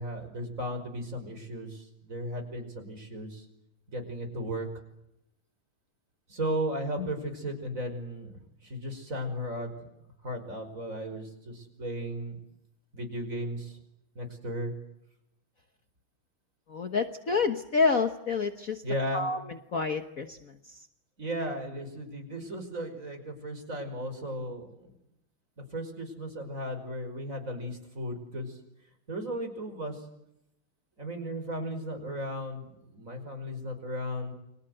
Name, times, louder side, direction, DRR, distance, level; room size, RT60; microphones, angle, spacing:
voice 1, 0.0-3.5 3.9-4.7 6.3-9.7 10.2-12.4 12.9-13.8 14.2-14.7 18.8-19.3 21.2-24.9 25.6-28.6 29.1-30.0 31.0-34.3, equal, 35° right, 6 dB, 5.7 m, -35 dB
voice 2, 16.7-18.8 19.1-19.4 19.7-20.5, left 4 dB, 45° left, 7 dB, 1.6 m, -28 dB
30.0 x 24.0 x 8.0 m, 0.84 s
omnidirectional pair, 2.3 m